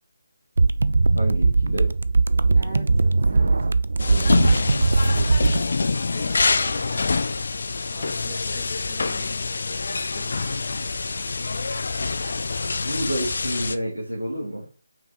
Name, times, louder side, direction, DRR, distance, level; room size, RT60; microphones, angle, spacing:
sound 1, 0.6-5.6, right 3 dB, 60° right, 0.4 m, -20 dB
voice 1, 1.1-1.9 12.7-14.7, equal, 85° right, -4 dB, 2.4 m, -29 dB
voice 2, 2.5-7.2 7.9-9.4 10.1-10.9, right 2 dB, 10° right, -14 dB, 3.2 m, -45 dB
sound 2, 4.0-13.8, left 4 dB, 50° left, 0.5 m, -26 dB
6.0 x 4.8 x 4.3 m, 0.37 s
figure-of-eight pair, 150°, 0 cm